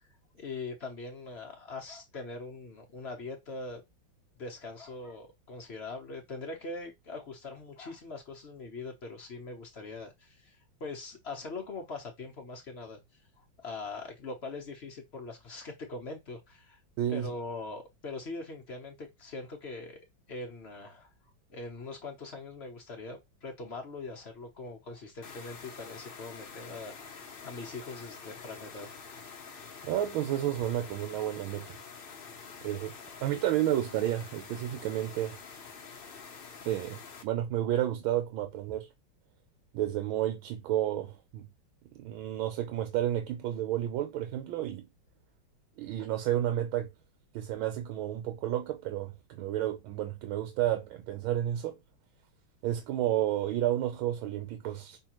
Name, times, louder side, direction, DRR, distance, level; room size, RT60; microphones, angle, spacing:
voice 1, 0.3-3.8 4.4-13.0 13.6-16.8 17.1-20.0 20.3-21.1 21.5-28.9, left 3 dB, 45° left, 0.9 m, -42 dB
voice 2, 17.0-17.3 29.8-31.7 32.6-32.9 33.2-35.4 36.6-38.9 39.7-41.5 41.9-44.9 45.8-46.9 47.3-51.8 52.6-55.0, right 12 dB, 90° right, 1.5 m, -31 dB
sound 1, 25.2-37.2, left 5 dB, 75° left, 0.5 m, -47 dB
5.6 x 3.1 x 2.9 m
omnidirectional pair, 2.2 m